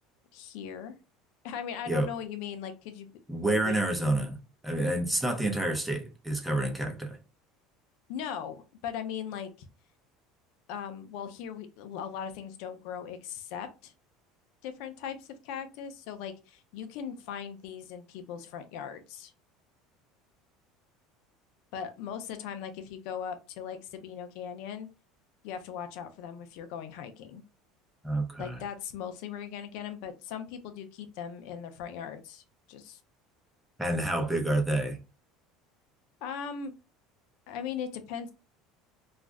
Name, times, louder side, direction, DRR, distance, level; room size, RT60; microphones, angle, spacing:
voice 1, 0.3-0.9 1.4-3.1 3.4-4.0 8.1-9.5 10.7-13.9 14.6-19.3 21.7-24.9 25.4-27.4 28.4-33.0 36.2-36.7 37.5-38.3, left 8 dB, 70° left, 0.5 m, -39 dB
voice 2, 3.3-7.2 28.0-28.6 33.8-35.0, right 1 dB, 5° right, 0.7 m, -29 dB
2.4 x 2.0 x 3.5 m
supercardioid pair, 120°, 0 cm